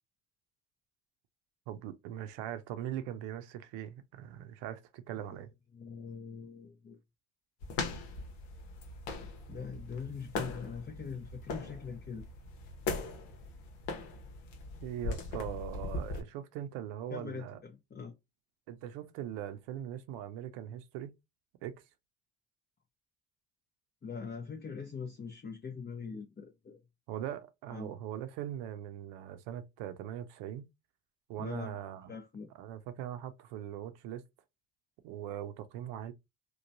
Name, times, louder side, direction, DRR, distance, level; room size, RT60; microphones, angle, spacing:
voice 1, 1.7-5.5 14.8-17.6 18.7-21.1 21.6-21.8 27.1-30.7 31.3-32.1 32.6-34.2 35.0-36.1, right 11 dB, 70° right, 0.7 m, -41 dB
voice 2, 5.7-7.0 9.5-12.2 17.1-18.1 24.0-26.8 27.7-27.9 31.4-31.8 32.1-32.5, left 5 dB, 20° left, 0.6 m, -42 dB
sound 1, 7.6-16.2, left 3 dB, 70° left, 0.9 m, -40 dB
3.0 x 2.2 x 2.6 m
hypercardioid pair, 55°, 45 cm